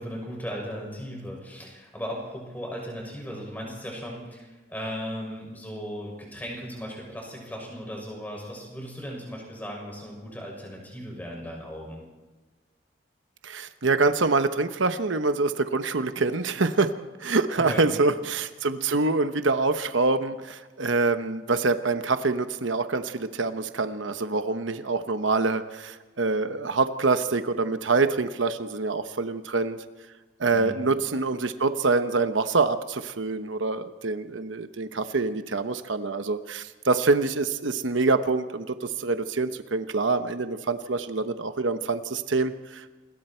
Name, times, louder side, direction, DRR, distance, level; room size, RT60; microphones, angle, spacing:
voice 1, 0.0-12.0 17.6-18.0 30.5-30.8, equal, 10° left, -1 dB, 6.4 m, -37 dB
voice 2, 13.4-16.9 17.2-29.8 30.4-42.9, right 3 dB, 80° right, 9 dB, 1.0 m, -25 dB
27.5 x 21.5 x 4.5 m, 1.2 s
head